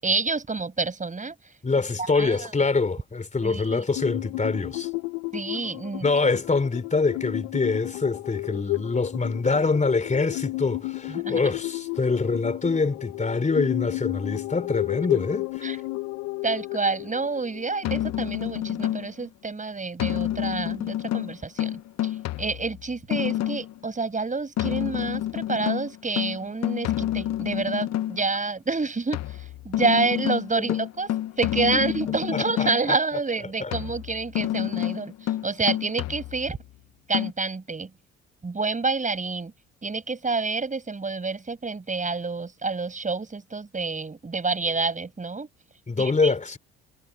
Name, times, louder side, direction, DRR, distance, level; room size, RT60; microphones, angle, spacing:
voice 1, 0.0-1.3 2.0-2.5 3.4-3.8 5.3-6.1 11.1-11.4 15.6-15.8 16.4-31.1 31.4-36.6 37.1-37.9 38.4-39.5 39.8-45.5 46.0-46.3, right 4 dB, 25° right, 7.5 m, -28 dB
voice 2, 1.6-4.9 6.0-15.8 30.6-30.8 31.7-31.8 32.3-33.0 33.6-33.7 45.9-46.6, left 4 dB, 25° left, 3.7 m, -25 dB
sound 1, 4.0-18.4, left 22 dB, 75° left, 1.7 m, -33 dB
sound 2, 17.8-19.2 20.0-23.8 24.6-28.2 29.1-32.9 33.7-36.7 37.1-37.3, left 13 dB, 60° left, 1.3 m, -28 dB
hypercardioid pair, 60°, 31 cm